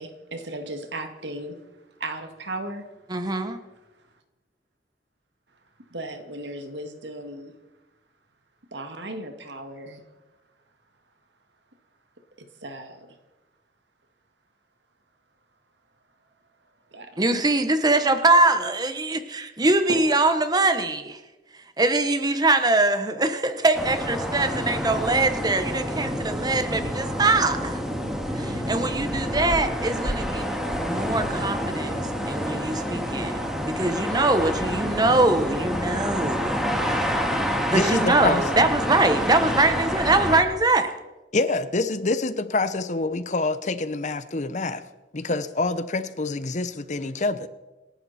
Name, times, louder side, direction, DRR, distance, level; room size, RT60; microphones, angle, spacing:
voice 1, 0.0-1.6 2.0-2.9 5.9-7.5 8.7-10.0 12.6-13.2 16.9-17.5 19.9-20.1 28.4-28.6, right 1 dB, 85° right, 2.2 m, -36 dB
voice 2, 3.1-3.6 17.2-21.2 21.8-27.8 28.3-37.2 37.7-40.9, right 2 dB, 25° right, 1.2 m, -23 dB
sound 1, 23.7-40.4, equal, ahead, 2.2 m, -28 dB
voice 3, 37.7-38.4 41.3-44.8 45.1-47.5, left 3 dB, 45° left, 0.9 m, -26 dB
27.0 x 11.5 x 4.4 m
head